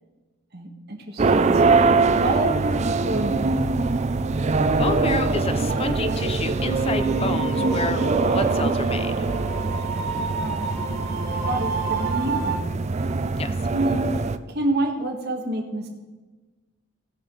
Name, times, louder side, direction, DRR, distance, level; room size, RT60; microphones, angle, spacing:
voice 1, 0.5-3.7 10.1-10.7 11.4-12.7 13.7-15.9, right 1 dB, 55° right, 3 dB, 1.5 m, -28 dB
sound 1, 1.2-14.4, right 3 dB, 35° right, 0.4 m, -23 dB
voice 2, 4.8-9.3 11.3-11.5 13.4-13.5, left 3 dB, 30° left, 10 dB, 0.7 m, -30 dB
sound 2, 5.7-12.5, right 4 dB, 80° right, 2.8 m, -31 dB
19.0 x 6.6 x 3.9 m, 1.2 s
head